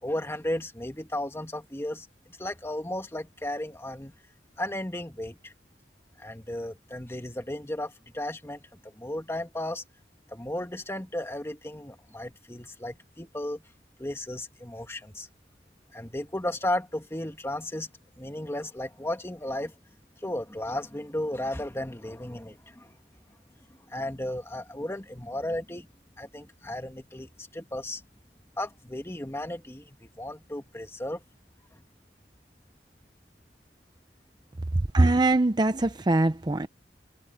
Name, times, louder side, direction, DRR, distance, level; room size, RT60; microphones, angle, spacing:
voice 1, 0.0-4.1 4.6-5.5 6.2-9.8 10.3-13.6 14.0-15.3 15.9-17.9 18.2-19.8 20.2-23.0 23.9-25.9 26.2-28.0 28.6-31.2, left 1 dB, 15° left, 2.1 m, -34 dB
voice 2, 34.9-36.7, right 2 dB, 25° right, 0.6 m, -22 dB
head